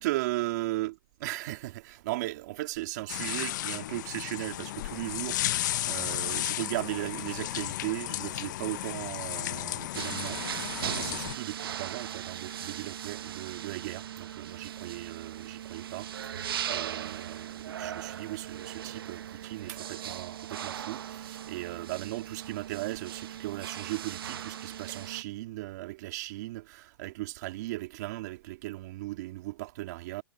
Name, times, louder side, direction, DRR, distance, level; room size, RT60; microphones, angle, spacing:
voice 1, 0.0-30.2, right 18 dB, 50° right, 2.1 m, -37 dB
sound 1, 3.1-11.3, left 14 dB, 55° left, 0.6 m, -34 dB
sound 2, 9.9-25.2, right 10 dB, 80° right, 1.1 m, -38 dB
hypercardioid pair, 150°, 12 cm